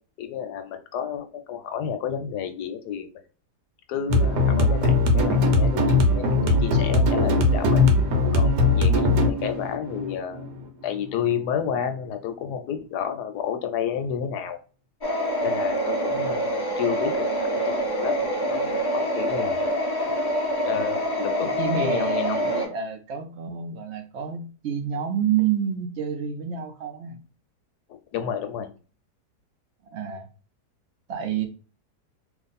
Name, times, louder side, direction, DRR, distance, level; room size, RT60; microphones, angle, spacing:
voice 1, 0.2-3.1 3.9-7.8 8.3-10.5 10.8-14.6 15.4-19.7 20.6-21.5 21.8-22.2 27.9-28.7, left 8 dB, 75° left, 7 dB, 1.1 m, -31 dB
sound 1, 4.1-11.1, left 2 dB, 85° right, 1.4 m, -20 dB
sound 2, 15.0-22.7, equal, 35° left, 0.3 m, -26 dB
voice 2, 21.6-27.2 29.9-30.3 31.1-31.5, right 8 dB, 70° right, 6 dB, 0.6 m, -28 dB
2.9 x 2.5 x 4.0 m, 0.37 s
omnidirectional pair, 1.8 m